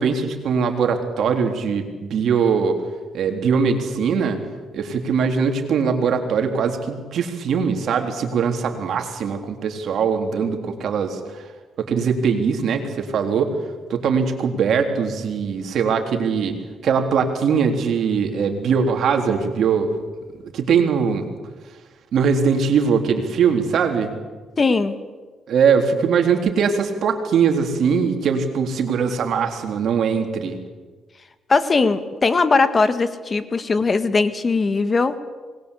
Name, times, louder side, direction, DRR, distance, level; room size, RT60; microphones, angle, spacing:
voice 1, 0.0-2.8 3.1-4.4 4.7-11.5 11.8-13.5 13.9-16.6 16.8-19.9 20.5-21.3 22.1-24.1 25.5-30.6, right 6 dB, 65° right, 5 dB, 3.9 m, -21 dB
voice 2, 24.6-24.9 31.5-35.2, left 4 dB, 35° left, 11 dB, 1.7 m, -19 dB
26.0 x 21.0 x 8.5 m, 1.4 s
cardioid pair, 90°, 0 cm